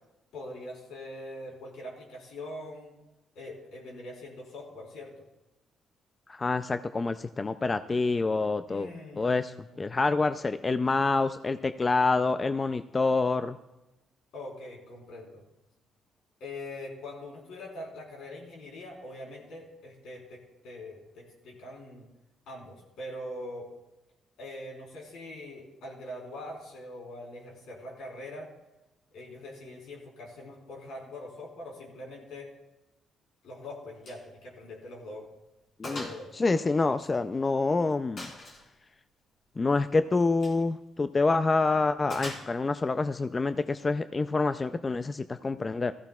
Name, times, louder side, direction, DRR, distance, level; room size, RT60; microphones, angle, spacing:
voice 1, 0.3-3.0 3.4-5.2 8.7-9.8 14.3-15.4 16.4-22.1 22.5-23.7 24.4-28.5 29.1-32.5 33.4-35.3 35.9-36.3 36.9-37.0, left 1 dB, 85° left, -2 dB, 4.0 m, -43 dB
voice 2, 6.3-8.9 9.2-13.6 35.8-36.1 36.3-38.3 39.6-45.9, left 3 dB, 30° left, 11 dB, 0.4 m, -27 dB
Gunshot gunfire, 34.0-34.3 34.6-34.7 35.2-35.3 35.8-36.2 36.5-37.5 38.2-38.7 40.3-40.6 42.1-42.8, left 2 dB, 50° left, 3.6 m, -41 dB
16.5 x 14.0 x 2.4 m, 0.99 s
cardioid pair, 90°, 0 cm